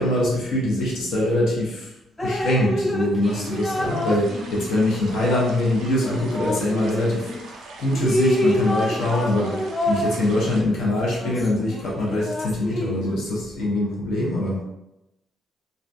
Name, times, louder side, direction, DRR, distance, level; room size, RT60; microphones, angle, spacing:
voice 1, 0.0-1.9 2.2-7.3 7.8-14.6, left 1 dB, 80° left, -5 dB, 0.8 m, -23 dB
Drip, 2.2-7.4 7.9-13.2, left 1 dB, 15° left, 0.4 m, -28 dB
sound 1, 3.2-10.6, right 3 dB, 80° right, 0.5 m, -42 dB
2.4 x 2.2 x 2.5 m, 0.88 s
cardioid pair, 90°, 0 cm